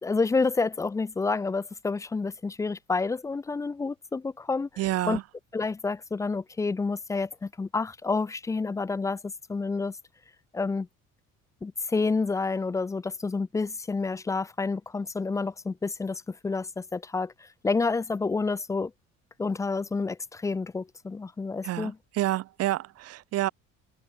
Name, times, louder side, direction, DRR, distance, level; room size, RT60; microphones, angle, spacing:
voice 1, 0.0-4.7 5.1-5.2 5.5-9.2 9.5-10.0 10.5-10.9 11.6-17.3 17.6-18.9 19.4-21.9, left 4 dB, 10° left, 0.4 m, -29 dB
voice 2, 4.8-5.2 21.6-23.5, right 15 dB, 55° right, 1.0 m, -29 dB
cardioid pair, 165°, 30 cm